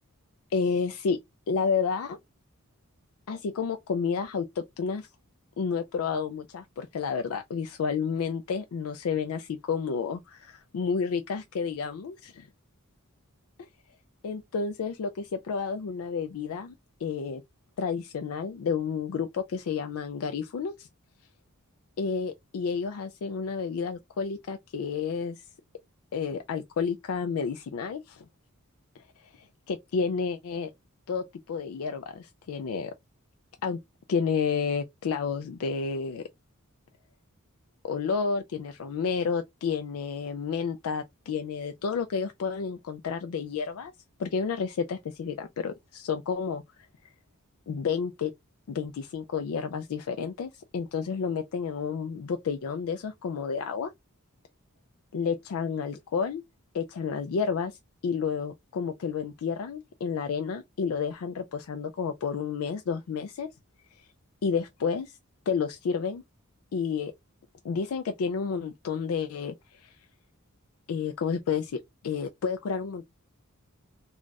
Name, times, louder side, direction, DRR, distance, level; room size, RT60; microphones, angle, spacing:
voice 1, 0.5-1.2 1.5-2.2 3.3-5.1 5.6-12.5 14.2-16.7 17.0-17.4 17.8-20.9 22.0-25.4 26.1-28.3 29.0-30.7 31.1-32.9 33.6-33.8 34.1-36.2 37.8-43.9 44.2-46.9 47.7-48.3 48.7-53.9 55.1-56.4 56.7-57.8 58.0-63.5 64.0-64.1 64.4-65.2 65.5-66.2 66.7-67.1 67.6-70.0 70.9-73.1, left 5 dB, 70° left, 0.4 m, -30 dB
2.4 x 2.3 x 3.8 m
head